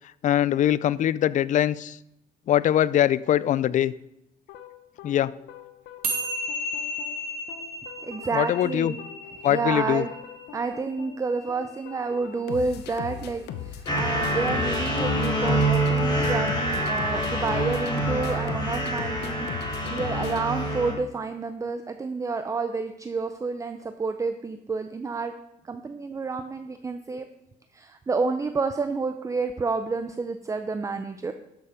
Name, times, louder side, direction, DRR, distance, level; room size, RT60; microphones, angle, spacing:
voice 1, 0.2-2.0 2.5-3.9 5.0-5.3 8.3-8.9 9.4-10.0, left 11 dB, 50° left, 19 dB, 0.4 m, -22 dB
sound 1, 4.5-21.1, left 9 dB, 80° left, 1.0 m, -40 dB
sound 2, 6.0-12.6, equal, 60° right, 2.5 m, -35 dB
voice 2, 8.0-9.0 9.3-10.1 10.5-25.3 25.6-27.3 27.7-31.3, right 4 dB, 20° right, 8 dB, 0.6 m, -29 dB
sound 3, 13.9-20.9, right 1 dB, 25° left, 3.6 m, -26 dB
12.0 x 7.0 x 5.1 m, 0.83 s
cardioid pair, 110°, 17 cm